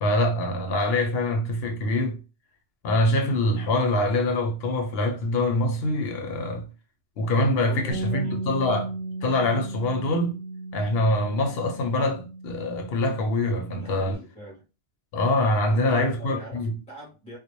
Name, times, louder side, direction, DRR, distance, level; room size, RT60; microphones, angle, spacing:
voice 1, 0.0-2.2 2.8-6.7 7.2-8.9 9.2-10.4 10.7-14.2 15.1-16.7, left 1 dB, 65° left, 0.7 m, -24 dB
voice 2, 7.4-8.4 13.8-14.6 15.7-17.4, right 1 dB, 5° left, 0.6 m, -42 dB
Bass guitar, 7.9-14.2, right 2 dB, 70° right, 0.8 m, -36 dB
2.1 x 2.0 x 2.9 m
omnidirectional pair, 1.2 m